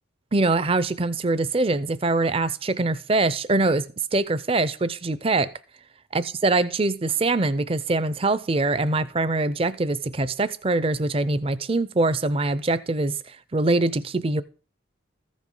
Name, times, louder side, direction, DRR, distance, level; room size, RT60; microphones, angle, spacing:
voice 1, 0.3-5.5 6.1-14.4, right 2 dB, 30° right, 0.5 m, -23 dB
14.5 x 5.1 x 5.4 m
head